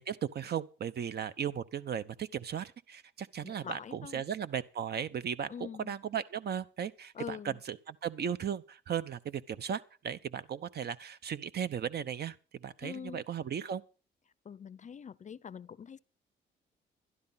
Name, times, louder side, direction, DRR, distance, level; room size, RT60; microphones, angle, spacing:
voice 1, 0.0-13.8, right 8 dB, 55° right, 0.9 m, -36 dB
voice 2, 3.4-4.2 5.5-5.9 7.1-7.6 12.8-13.2 14.4-16.0, left 7 dB, 40° left, 0.6 m, -44 dB
12.5 x 11.0 x 5.7 m
cardioid pair, 90°, 20 cm